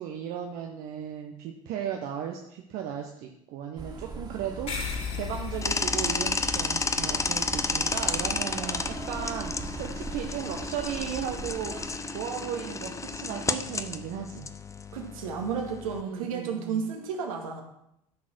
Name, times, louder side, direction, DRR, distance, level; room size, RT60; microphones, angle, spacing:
voice 1, 0.0-14.5 16.0-16.9, right 8 dB, 55° right, 2 dB, 1.2 m, -36 dB
sound 1, 3.8-11.9, right 3 dB, 25° right, 2.4 m, -40 dB
sound 2, 4.7-9.5, left 6 dB, 35° left, 3.2 m, -38 dB
sound 3, 5.6-16.0, left 4 dB, 15° left, 0.8 m, -32 dB
voice 2, 14.9-17.6, right 6 dB, 70° right, 2 dB, 2.0 m, -32 dB
13.5 x 6.4 x 6.3 m, 0.79 s
figure-of-eight pair, 60°, 18 cm